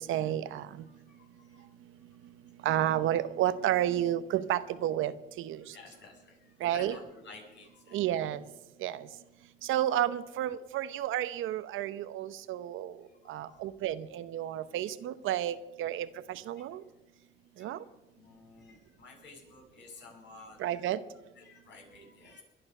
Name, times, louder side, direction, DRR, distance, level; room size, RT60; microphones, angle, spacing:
voice 1, 0.0-0.7 2.6-5.6 6.6-7.0 7.9-8.4 8.8-9.1 9.6-12.9 13.3-16.8 17.6-17.8 20.6-21.0, right 12 dB, 85° right, 13 dB, 0.9 m, -31 dB
voice 2, 0.8-1.7 5.7-8.1 13.2-13.6 16.6-16.7 17.6-20.8 21.4-22.4, left 3 dB, 65° left, 0 dB, 7.9 m, -53 dB
22.0 x 11.5 x 5.5 m, 1.0 s
cardioid pair, 90°, 20 cm